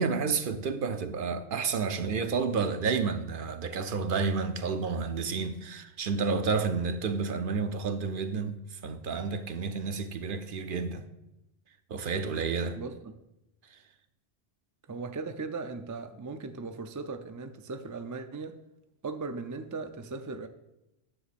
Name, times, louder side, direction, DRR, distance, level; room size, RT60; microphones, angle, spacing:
voice 1, 0.0-11.1 11.9-12.8 13.7-13.8, right 5 dB, 60° right, 0.8 m, -30 dB
voice 2, 12.7-13.2 14.9-18.6 19.0-20.5, right 4 dB, 30° right, 0.3 m, -38 dB
10.0 x 6.9 x 4.2 m
omnidirectional pair, 1.1 m